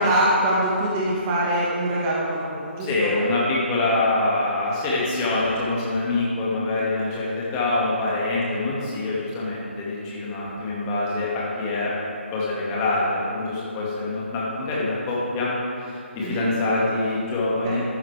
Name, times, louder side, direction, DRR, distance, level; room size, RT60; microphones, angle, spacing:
voice 1, 0.0-3.1 16.2-16.5 17.6-17.8, right 1 dB, 20° right, -5 dB, 1.4 m, -23 dB
voice 2, 2.8-11.9 12.3-15.5 15.9-17.8, left 2 dB, 20° left, -6 dB, 2.1 m, -25 dB
12.0 x 9.6 x 3.5 m, 2.6 s
figure-of-eight pair, 145°, 7 cm